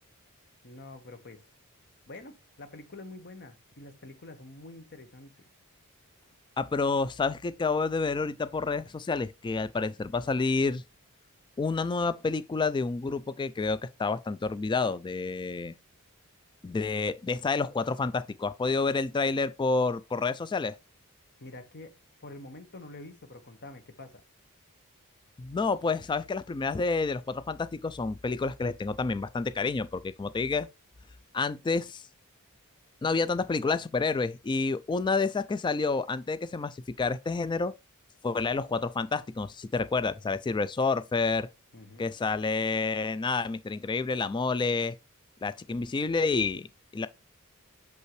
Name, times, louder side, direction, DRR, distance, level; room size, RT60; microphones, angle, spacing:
voice 1, 0.6-1.5 2.1-5.3 21.4-21.9 22.2-24.2 41.7-42.1, left 2 dB, 50° left, 1.3 m, -46 dB
voice 2, 6.6-10.8 11.6-15.7 16.6-20.7 25.4-30.7 31.3-32.0 33.0-37.7 38.2-41.5 42.0-44.9 45.4-46.7 46.9-47.1, left 4 dB, 20° left, 0.3 m, -29 dB
6.5 x 5.5 x 3.1 m
head